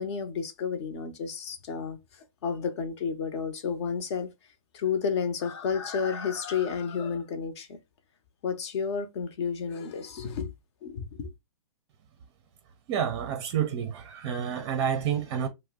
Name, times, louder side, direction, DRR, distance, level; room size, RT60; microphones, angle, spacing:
voice 1, 0.0-4.3 4.7-7.8 8.4-10.5 10.8-11.3, left 6 dB, 50° left, 0.7 m, -31 dB
voice 2, 12.9-15.5, right 8 dB, 35° right, 0.5 m, -29 dB
2.6 x 2.1 x 3.4 m
hypercardioid pair, 135°, 18 cm